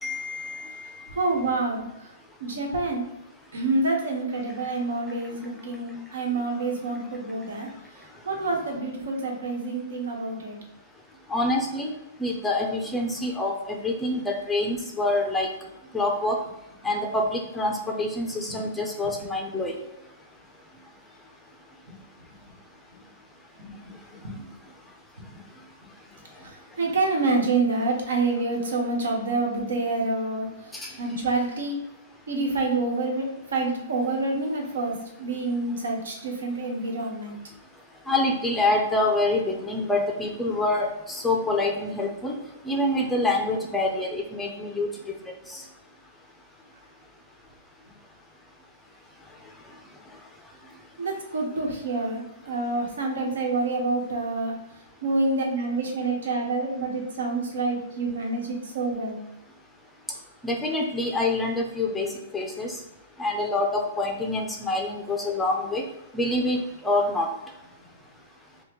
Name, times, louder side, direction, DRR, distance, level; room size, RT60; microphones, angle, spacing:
voice 1, 0.0-1.2 11.3-11.9 12.2-15.5 15.9-16.4 16.8-19.8 30.7-30.9 38.1-42.3 42.6-45.2 45.5-45.6 60.4-62.7 63.2-65.8 66.1-67.3, left 2 dB, 5° left, 1 dB, 0.4 m, -26 dB
voice 2, 1.2-1.9 2.4-3.0 3.5-7.7 8.2-10.6 18.5-18.6 23.6-23.7 24.2-24.3 25.3-25.4 26.8-30.5 31.0-31.8 32.3-37.4 51.0-54.5 55.0-59.2, right 3 dB, 85° right, 0 dB, 1.3 m, -27 dB
5.5 x 2.2 x 3.0 m, 0.93 s
hypercardioid pair, 165°, 0 cm